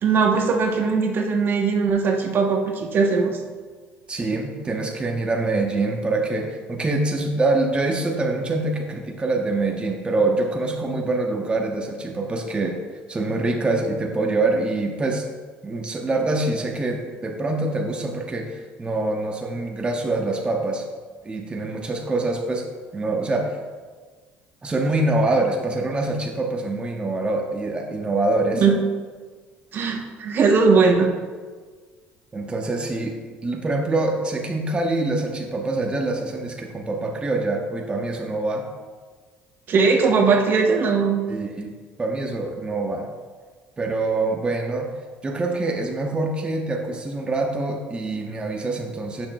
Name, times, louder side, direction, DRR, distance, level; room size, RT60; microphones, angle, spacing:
voice 1, 0.0-3.4 28.5-28.8 29.7-31.1 39.7-41.2, right 4 dB, 45° right, 3 dB, 0.9 m, -19 dB
voice 2, 4.1-12.8 13.1-15.2 15.6-20.9 21.2-22.7 22.9-23.6 24.6-28.7 32.3-38.7 41.3-41.7 42.0-43.1 43.8-44.9 45.2-49.3, right 2 dB, 20° right, 2 dB, 0.8 m, -25 dB
10.0 x 6.1 x 2.3 m, 1.5 s
supercardioid pair, 90°, 5 cm